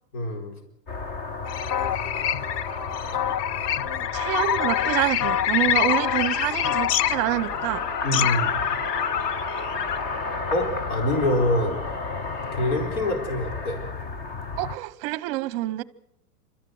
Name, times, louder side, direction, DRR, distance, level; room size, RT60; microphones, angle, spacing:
voice 1, 0.1-0.6 8.0-8.6 10.5-11.8 12.5-13.8, left 1 dB, 65° left, 4.5 m, -25 dB
sound 1, 0.9-14.8, left 3 dB, 20° left, 0.7 m, -33 dB
sound 2, 1.5-10.1, left 11 dB, 85° left, 0.7 m, -26 dB
voice 2, 4.1-7.8 14.6-15.8, right 17 dB, 35° right, 0.8 m, -27 dB
29.0 x 13.5 x 7.9 m
supercardioid pair, 150°, 47 cm